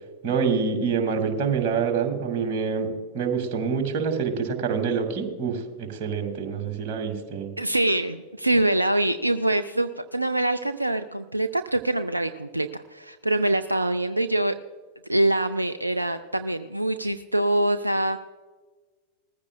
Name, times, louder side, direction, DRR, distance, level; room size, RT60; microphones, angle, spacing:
voice 1, 0.2-7.5, right 5 dB, 45° right, 4 dB, 2.2 m, -26 dB
voice 2, 7.6-14.6 15.1-18.2, right 1 dB, 85° right, 10 dB, 0.4 m, -24 dB
20.0 x 15.0 x 2.3 m, 1.4 s
figure-of-eight pair, 90°, 0 cm